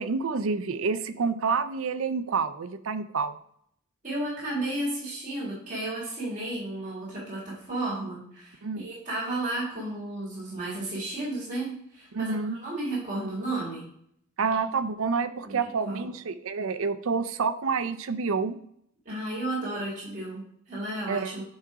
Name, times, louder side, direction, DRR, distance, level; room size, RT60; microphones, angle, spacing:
voice 1, 0.0-3.4 8.6-8.9 12.1-12.6 14.4-18.6 21.1-21.3, right 5 dB, 65° right, 12 dB, 0.5 m, -28 dB
voice 2, 4.0-13.9 15.4-15.6 15.8-16.1 19.0-21.4, right 2 dB, 35° right, -8 dB, 3.4 m, -33 dB
9.6 x 3.7 x 4.7 m, 0.69 s
head